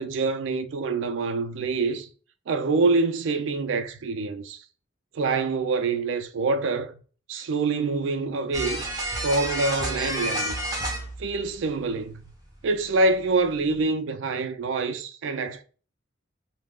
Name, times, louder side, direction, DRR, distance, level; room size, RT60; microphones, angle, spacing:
voice 1, 0.0-2.1 2.5-4.6 5.1-6.9 7.3-8.8 9.2-10.6 11.2-12.2 12.6-15.6, right 3 dB, 70° right, 0.4 m, -26 dB
sound 1, 8.5-11.9 12.2-12.3 13.0-13.1, right 1 dB, 20° right, 0.7 m, -30 dB
2.3 x 2.1 x 3.4 m
head